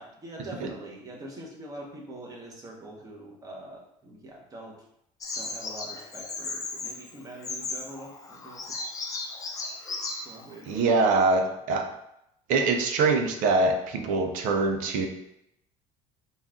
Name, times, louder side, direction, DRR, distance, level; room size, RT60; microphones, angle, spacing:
voice 1, 0.0-4.8 5.3-8.8 10.2-11.6, right 1 dB, 25° right, -2 dB, 1.0 m, -44 dB
Bird vocalization bird call bird song, 5.2-10.8, left 3 dB, 25° left, 0.6 m, -36 dB
voice 2, 10.7-11.9 12.5-15.1, right 3 dB, 65° right, 5 dB, 0.6 m, -24 dB
4.1 x 2.4 x 3.6 m, 0.80 s
cardioid pair, 130°, 15 cm